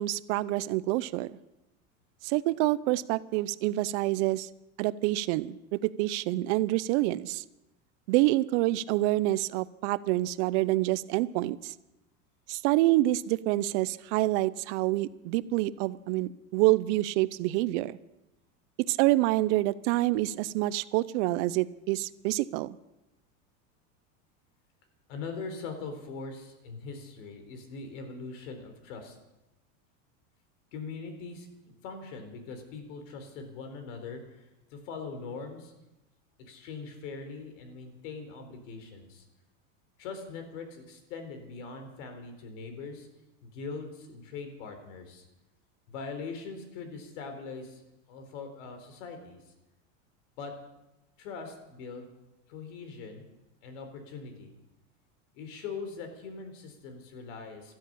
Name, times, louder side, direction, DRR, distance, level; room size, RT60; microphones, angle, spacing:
voice 1, 0.0-1.4 2.2-4.5 4.8-7.4 8.1-11.7 12.5-18.0 18.8-22.8, right 17 dB, 65° right, 17 dB, 0.8 m, -27 dB
voice 2, 25.1-29.2 30.7-35.7 36.4-39.2 40.0-43.1 43.4-45.2 45.9-47.8 48.1-49.4 50.4-50.5 51.2-52.1 52.5-53.2 53.6-54.5 55.3-57.7, left 4 dB, 70° left, 6 dB, 4.1 m, -41 dB
13.0 x 12.5 x 8.6 m, 0.94 s
supercardioid pair, 130°, 39 cm